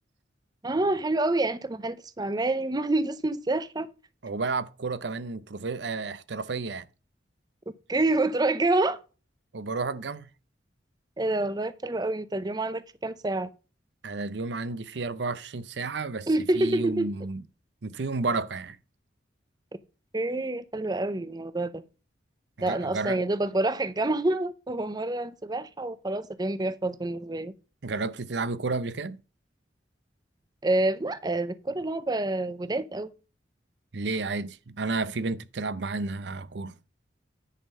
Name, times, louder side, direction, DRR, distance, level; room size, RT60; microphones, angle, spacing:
voice 1, 0.6-3.9 7.9-9.0 11.2-13.5 16.3-17.1 20.1-21.8 22.6-27.5 30.6-33.1, right 2 dB, 20° right, 0.6 m, -27 dB
voice 2, 4.2-6.9 9.5-10.3 14.0-16.3 16.5-17.4 17.8-18.8 22.6-23.2 27.8-29.2 33.9-36.8, right 3 dB, 70° right, 0.7 m, -31 dB
10.0 x 5.5 x 5.4 m
head